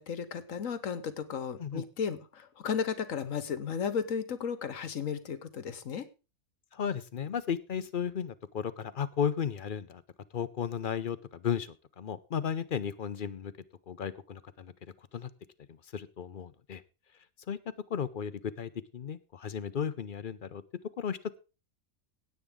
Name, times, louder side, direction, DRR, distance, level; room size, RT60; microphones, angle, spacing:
voice 1, 0.0-6.1, left 6 dB, 70° left, 12 dB, 1.4 m, -34 dB
voice 2, 6.7-10.0 10.3-13.5 13.9-14.7 15.1-15.3 15.7-16.8 17.5-17.6 17.9-20.6 21.0-21.4, left 7 dB, 50° left, 14 dB, 0.7 m, -34 dB
17.0 x 8.3 x 3.7 m, 0.31 s
omnidirectional pair, 1.4 m